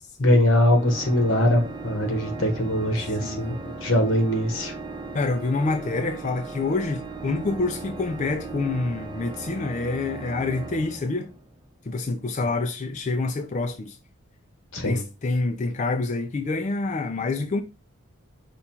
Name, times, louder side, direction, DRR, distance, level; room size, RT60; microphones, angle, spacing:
voice 1, 0.2-4.7 14.7-15.0, left 1 dB, 80° left, 1.4 m, -22 dB
Organ, 0.7-11.6, right 3 dB, 25° right, 0.7 m, -37 dB
voice 2, 3.2-3.6 5.1-11.3 11.9-14.0 14.8-17.6, left 3 dB, 35° left, 0.4 m, -27 dB
5.3 x 2.3 x 4.3 m
head